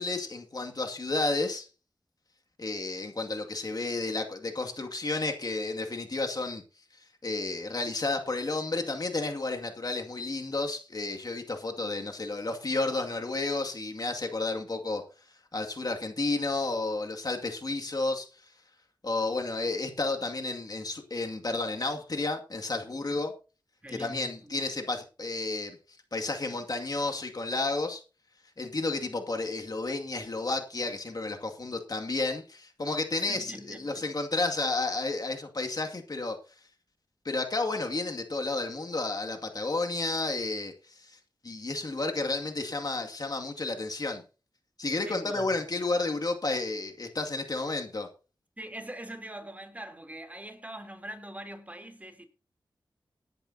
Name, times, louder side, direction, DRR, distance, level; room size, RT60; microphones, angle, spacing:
voice 1, 0.0-1.7 2.6-6.6 7.2-15.0 15.5-18.3 19.0-23.3 23.9-25.8 26.1-28.0 28.6-36.4 37.2-41.2 41.4-44.2 44.8-48.1, left 3 dB, 50° left, 2.2 m, -31 dB
voice 2, 23.8-24.6 33.3-34.1 45.0-45.6 48.6-52.3, right 1 dB, 20° right, 3.2 m, -43 dB
18.5 x 10.5 x 2.8 m
cardioid pair, 40°, 8 cm